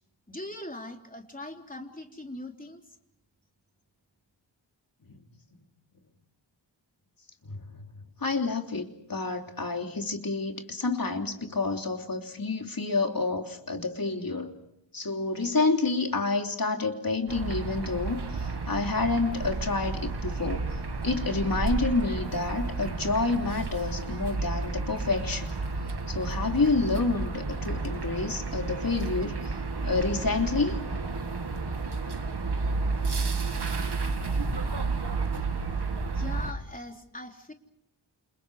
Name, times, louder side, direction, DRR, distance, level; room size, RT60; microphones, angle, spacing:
voice 1, 0.3-2.8 36.1-37.5, left 1 dB, 20° left, 3 dB, 3.5 m, -40 dB
voice 2, 8.2-14.5 14.9-25.6 26.1-29.6 29.8-30.8, left 3 dB, 50° left, 3 dB, 3.1 m, -29 dB
sound 1, 17.3-36.5, right 3 dB, 65° right, 2.6 m, -31 dB
29.5 x 28.5 x 4.9 m, 0.79 s
wide cardioid pair, 85°, 44 cm